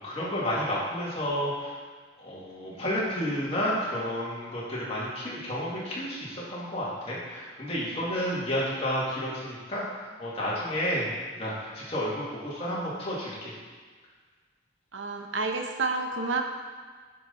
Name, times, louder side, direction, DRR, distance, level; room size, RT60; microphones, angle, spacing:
voice 1, 0.0-1.8 2.2-9.8 10.2-13.5, equal, 35° left, -7 dB, 2.3 m, -31 dB
voice 2, 14.9-16.4, right 3 dB, 85° right, 4 dB, 0.8 m, -29 dB
9.3 x 5.8 x 4.1 m, 1.5 s
head